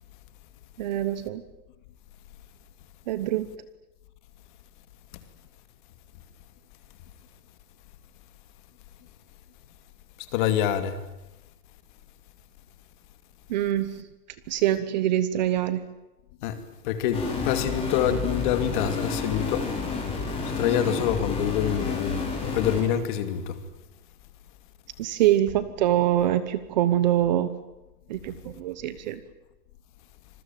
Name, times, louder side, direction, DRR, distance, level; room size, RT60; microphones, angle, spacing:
voice 1, 0.8-1.4 3.1-3.5 13.5-13.9 14.5-15.8 20.9-21.0 25.0-27.5 28.1-29.2, right 12 dB, 30° right, 1.0 m, -24 dB
voice 2, 10.3-11.0 16.4-19.7 20.6-23.6, left 9 dB, 30° left, 2.5 m, -26 dB
sound 1, 17.1-22.8, left 4 dB, 10° left, 6.0 m, -30 dB
26.5 x 21.5 x 9.1 m
supercardioid pair, 175°, 46 cm